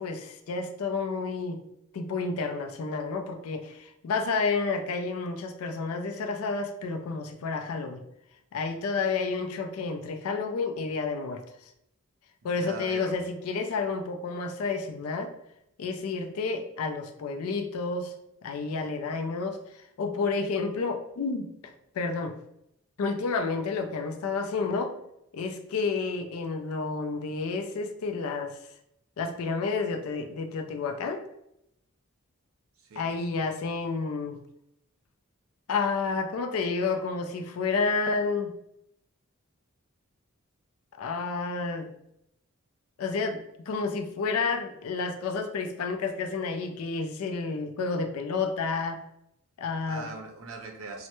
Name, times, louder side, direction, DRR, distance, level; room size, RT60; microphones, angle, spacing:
voice 1, 0.0-1.6 1.9-8.0 8.5-11.4 12.4-15.3 15.8-18.1 18.4-21.5 21.9-22.3 23.0-24.9 25.3-28.6 29.2-31.2 33.0-34.4 35.7-38.5 41.0-41.9 43.0-43.4 43.7-49.0 49.6-50.1, left 4 dB, 85° left, 6 dB, 0.4 m, -30 dB
voice 2, 12.4-13.1 32.9-33.1 49.8-51.1, right 3 dB, 65° right, 3 dB, 0.5 m, -41 dB
3.2 x 2.1 x 2.9 m, 0.78 s
head